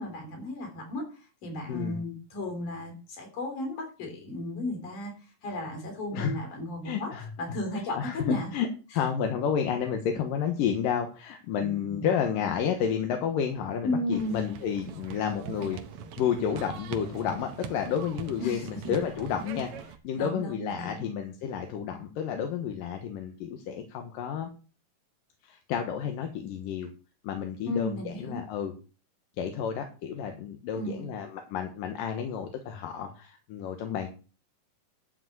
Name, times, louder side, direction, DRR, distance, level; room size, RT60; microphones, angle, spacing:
voice 1, 0.0-5.1 5.4-7.1 7.4-8.5 11.6-12.4 13.8-14.5 18.4-18.9 20.2-21.1 27.7-28.4 30.7-31.2, left 1 dB, 65° left, 3 dB, 4.8 m, -34 dB
voice 2, 6.8-7.3 7.9-8.7 8.9-15.8 16.2-24.5 25.4-26.9 27.2-28.7 29.4-34.1, left 8 dB, 80° left, 5 dB, 2.8 m, -31 dB
sound 1, 14.1-20.0, right 7 dB, 75° right, 1.3 m, -42 dB
12.0 x 4.9 x 8.0 m, 0.35 s
omnidirectional pair, 3.9 m